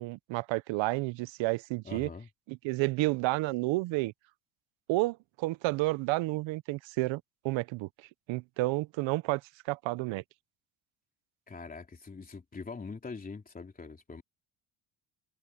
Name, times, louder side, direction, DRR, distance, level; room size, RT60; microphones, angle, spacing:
voice 1, 0.0-2.1 2.5-4.1 4.9-7.9 8.3-9.4 9.7-10.2, right 21 dB, 80° right, 0.6 m, -30 dB
voice 2, 1.8-2.3 11.5-14.2, left 4 dB, 20° left, 3.3 m, -43 dB
cardioid pair, 160°, 45 cm